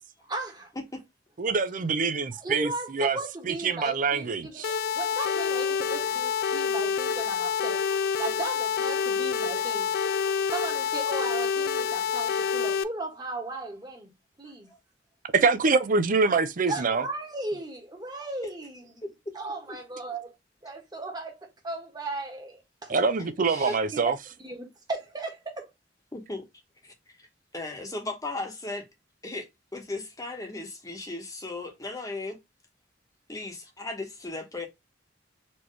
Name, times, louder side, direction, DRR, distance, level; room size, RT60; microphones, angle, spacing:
voice 1, 0.3-0.7 2.4-7.8 8.2-9.9 10.5-14.1 14.4-14.7 16.7-18.8 19.3-20.3 20.6-22.9 23.6-24.1 24.4-25.7, right 2 dB, 20° right, 1.5 m, -36 dB
voice 2, 1.4-3.2 3.4-4.8 15.3-17.0 22.9-24.1, right 4 dB, 45° right, 0.5 m, -25 dB
sound 1, 4.6-12.8, left 6 dB, 55° left, 0.3 m, -27 dB
voice 3, 19.0-19.4 19.7-19.8 23.5-23.8 26.1-26.5 26.8-27.3 27.5-28.9 29.2-32.4 33.3-34.7, left 2 dB, 20° left, 1.2 m, -37 dB
4.4 x 3.0 x 3.1 m
head